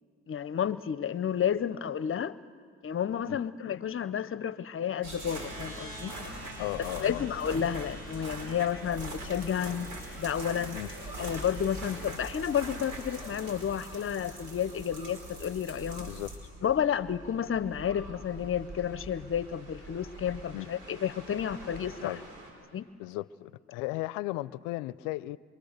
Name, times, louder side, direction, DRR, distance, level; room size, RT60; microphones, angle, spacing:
voice 1, 0.3-2.4 2.8-6.2 7.0-9.9 10.2-10.8 11.2-16.1 16.6-22.2 22.7-22.9, left 8 dB, 45° left, 0.8 m, -31 dB
sound 1, 5.0-22.5, right 1 dB, 75° right, 5.3 m, -42 dB
voice 2, 6.6-7.3 10.7-10.9 16.0-16.3 20.5-20.7 22.0-22.2 23.0-25.4, left 18 dB, 80° left, 0.6 m, -36 dB
24.5 x 24.5 x 6.7 m
hypercardioid pair, 60°, 31 cm